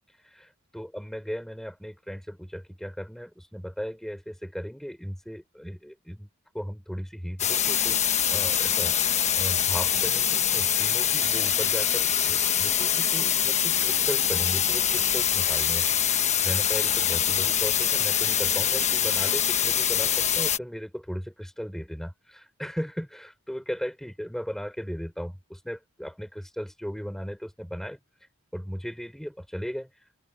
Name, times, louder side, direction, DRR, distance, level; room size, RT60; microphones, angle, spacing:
voice 1, 0.2-6.3 6.5-16.2 16.4-28.0 28.5-30.0, equal, ahead, 5.9 m, -36 dB
sound 1, 7.4-20.6, left 9 dB, 35° left, 1.2 m, -24 dB
open air
head